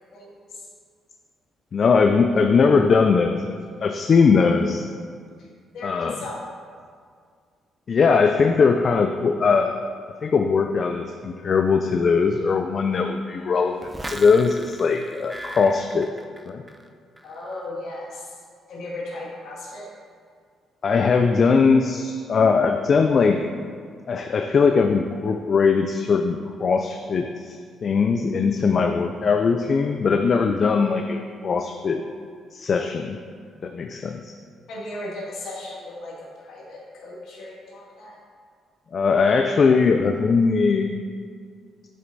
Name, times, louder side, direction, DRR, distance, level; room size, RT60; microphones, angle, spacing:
voice 1, 0.1-0.7 5.4-5.5 5.7-6.4 17.2-18.4 18.7-19.9 34.7-38.2, left 2 dB, 70° left, -5 dB, 2.2 m, -36 dB
voice 2, 1.7-3.6 3.8-4.8 5.8-6.2 7.9-9.8 10.2-16.1 16.5-16.6 20.8-23.5 24.1-32.0 32.5-33.2 33.6-34.3 38.9-40.9, left 5 dB, 50° left, 5 dB, 0.4 m, -20 dB
sound 1, 13.8-16.9 17.2-17.6, right 1 dB, 10° right, 0.6 m, -38 dB
7.6 x 6.5 x 4.1 m, 2.1 s
cardioid pair, 90°, 0 cm